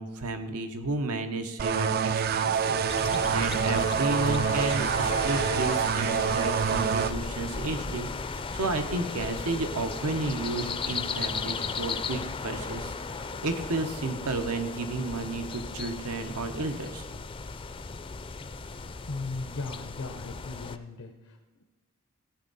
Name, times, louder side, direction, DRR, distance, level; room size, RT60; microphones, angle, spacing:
voice 1, 0.0-8.1 8.5-17.0, right 2 dB, 85° right, 7 dB, 1.0 m, -32 dB
sound 1, 1.6-7.1, right 7 dB, 45° right, 0.3 m, -26 dB
sound 2, 2.9-20.8, left 4 dB, 25° left, 0.4 m, -36 dB
voice 2, 19.1-21.6, left 3 dB, 90° left, 4 dB, 0.8 m, -37 dB
15.5 x 8.4 x 4.1 m, 1.2 s
head